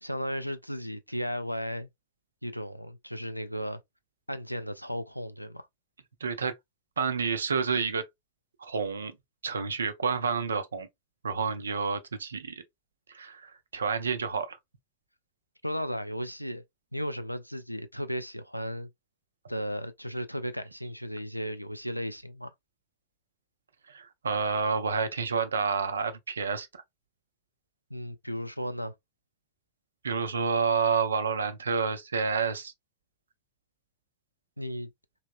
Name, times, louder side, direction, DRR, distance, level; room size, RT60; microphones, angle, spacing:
voice 1, 0.0-1.9 2.4-3.8 4.3-5.7 15.6-16.6 16.9-18.9 19.5-22.5 27.9-28.9 34.6-34.9, equal, 90° left, 0.3 m, -35 dB
voice 2, 6.2-6.5 7.0-8.1 8.6-9.1 9.4-10.9 11.2-12.6 13.1-14.6 23.9-26.7 30.0-32.7, right 5 dB, 70° right, 0.5 m, -29 dB
3.1 x 2.8 x 2.3 m
figure-of-eight pair, 90°, 0 cm